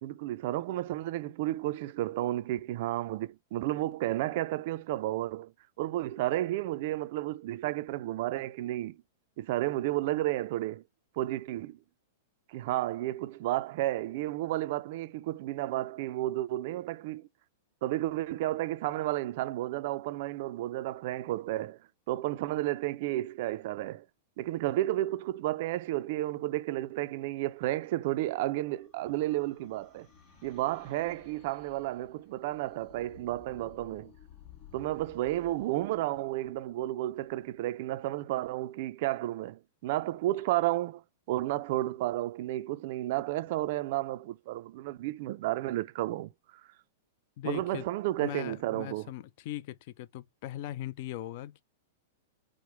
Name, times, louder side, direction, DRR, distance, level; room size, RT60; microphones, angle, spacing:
voice 1, 0.0-5.5 5.8-9.0 9.4-10.8 11.2-11.8 12.5-17.3 17.8-21.8 22.1-24.1 24.4-30.1 30.4-34.1 34.7-41.0 41.3-46.3 47.4-49.1, right 15 dB, 55° right, 0.3 m, -32 dB
sound 1, 27.8-37.2, left 8 dB, 40° left, 2.4 m, -57 dB
voice 2, 47.4-47.9 48.2-51.6, left 13 dB, 55° left, 0.3 m, -39 dB
4.8 x 2.0 x 2.9 m
hypercardioid pair, 130°, 0 cm